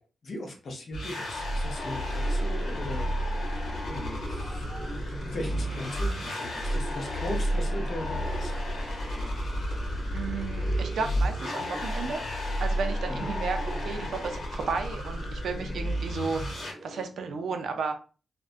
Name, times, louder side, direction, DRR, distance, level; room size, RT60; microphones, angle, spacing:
voice 1, 0.2-4.7 5.2-8.5 13.1-13.3, left 1 dB, 50° left, 2 dB, 0.6 m, -38 dB
sound 1, 0.9-16.7, equal, 70° left, 1.0 m, -31 dB
sound 2, 1.8-17.0, right 1 dB, 30° right, 0.8 m, -43 dB
voice 2, 10.1-12.2 12.6-17.9, right 4 dB, 80° right, 5 dB, 0.4 m, -33 dB
2.4 x 2.1 x 2.4 m, 0.37 s
wide cardioid pair, 165°, 0 cm